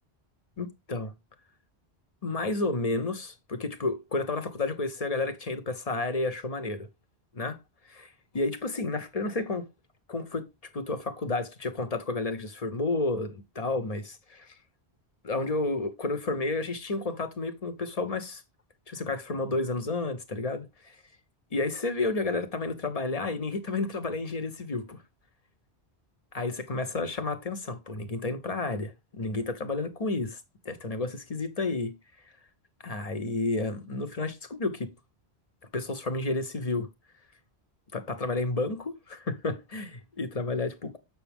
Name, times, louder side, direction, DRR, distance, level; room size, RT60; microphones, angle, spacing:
voice 1, 0.6-1.1 2.2-6.9 7.3-7.6 7.8-9.6 10.1-10.5 10.7-14.5 15.2-18.4 18.9-21.0 21.5-25.0 26.3-32.0 32.8-34.9 35.7-36.9 37.9-41.0, left 3 dB, 35° left, 1.1 m, -31 dB
7.9 x 6.1 x 3.5 m
omnidirectional pair, 1.1 m